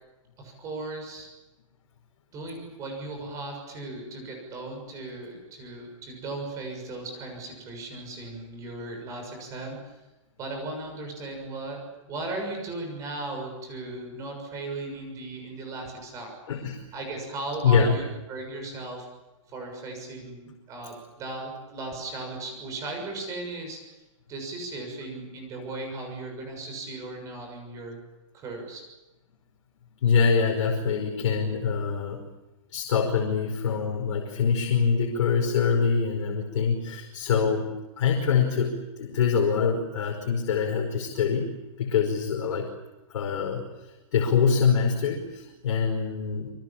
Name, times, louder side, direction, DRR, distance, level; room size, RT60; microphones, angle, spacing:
voice 1, 0.4-1.3 2.3-9.9 10.4-16.3 16.9-19.1 19.5-23.8 24.3-28.0 28.3-28.8, right 2 dB, 20° right, 3 dB, 6.7 m, -37 dB
voice 2, 16.5-16.8 17.6-18.0 30.0-32.2 32.7-37.7 38.0-41.5 41.8-42.7 43.1-46.5, left 6 dB, 60° left, 1 dB, 5.3 m, -24 dB
28.0 x 24.5 x 7.5 m, 1.0 s
hypercardioid pair, 170°, 17 cm